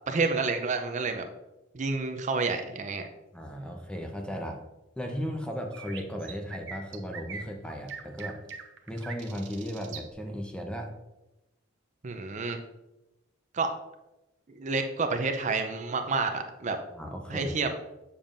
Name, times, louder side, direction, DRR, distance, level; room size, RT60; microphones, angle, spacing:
voice 1, 0.1-1.3 1.7-3.1 12.0-12.6 13.5-13.7 14.5-16.8 17.3-17.7, right 4 dB, 40° right, 6 dB, 0.5 m, -29 dB
voice 2, 3.3-4.6 5.0-8.4 8.9-10.9 16.9-17.5, equal, 5° left, 3 dB, 0.7 m, -36 dB
sound 1, 5.7-10.1, right 6 dB, 65° right, 0.8 m, -42 dB
7.1 x 7.0 x 2.5 m, 0.97 s
head